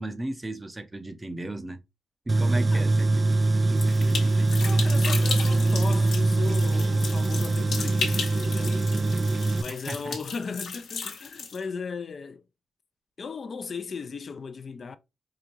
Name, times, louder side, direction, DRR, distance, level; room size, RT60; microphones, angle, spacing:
voice 1, 0.0-1.8 2.3-4.5 9.7-10.2, right 1 dB, 25° right, 0.7 m, -36 dB
Tools, 2.3-9.6, right 2 dB, 40° right, 0.3 m, -23 dB
sound 1, 3.8-11.6, left 5 dB, 75° left, 1.0 m, -35 dB
voice 2, 4.6-9.2 9.6-12.4 13.2-15.0, left 5 dB, 55° left, 0.5 m, -37 dB
4.8 x 2.5 x 3.0 m
supercardioid pair, 55°, 0 cm